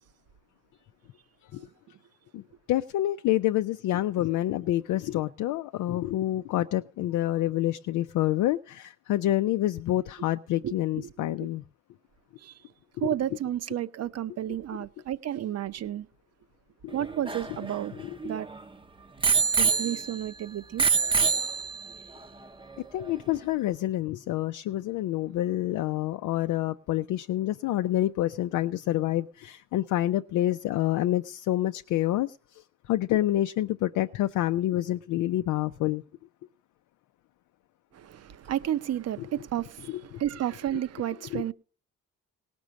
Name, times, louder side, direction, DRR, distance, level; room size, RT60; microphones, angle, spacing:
voice 1, 2.7-11.6 13.0-13.1 16.8-17.0 18.0-18.2 22.9-36.0 39.9-40.2 40.7-40.8 41.3-41.4, left 14 dB, 85° left, 0.5 m, -28 dB
voice 2, 10.6-11.1 11.4-11.5 12.4-12.5 13.0-16.1 16.9-17.9 18.2-18.5 19.6-20.8 37.9-41.5, right 11 dB, 55° right, 0.7 m, -32 dB
Bicycle bell, 16.9-18.6 19.2-20.4 20.8-22.0 22.8-22.9, right 5 dB, 15° right, 0.7 m, -26 dB
18.0 x 6.1 x 6.3 m
cardioid pair, 90°, 30 cm